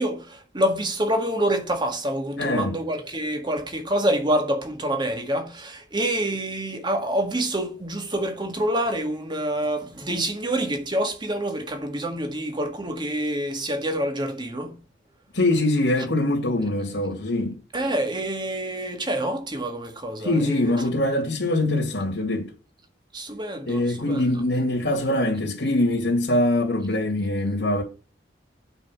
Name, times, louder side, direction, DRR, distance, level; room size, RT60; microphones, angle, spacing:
voice 1, 0.0-14.8 17.7-20.7 23.1-24.2, right 1 dB, 25° right, 1.9 m, -27 dB
voice 2, 2.4-2.7 15.3-17.6 20.2-22.5 23.7-27.8, left 1 dB, 75° left, 2.5 m, -23 dB
9.2 x 5.4 x 6.2 m
head